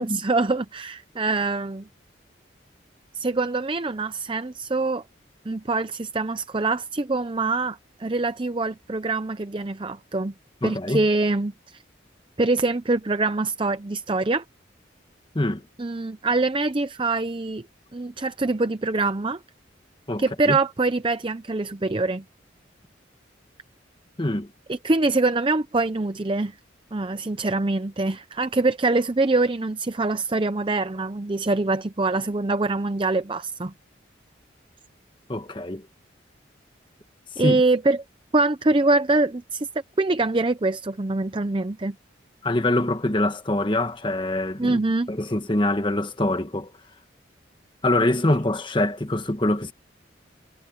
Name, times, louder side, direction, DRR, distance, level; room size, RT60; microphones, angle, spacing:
voice 1, 0.0-1.9 3.1-5.0 5.5-10.3 10.6-11.8 12.4-14.4 15.8-17.7 17.9-19.4 20.2-22.2 24.7-26.5 26.9-33.7 37.4-38.0 38.3-39.7 40.0-42.0 44.6-45.1, right 3 dB, 25° right, 0.6 m, -24 dB
voice 2, 10.6-11.1 15.3-15.6 20.1-20.6 24.2-24.5 35.3-35.9 37.4-37.6 42.4-44.8 45.1-46.7 47.8-49.7, left 1 dB, 25° left, 1.4 m, -24 dB
head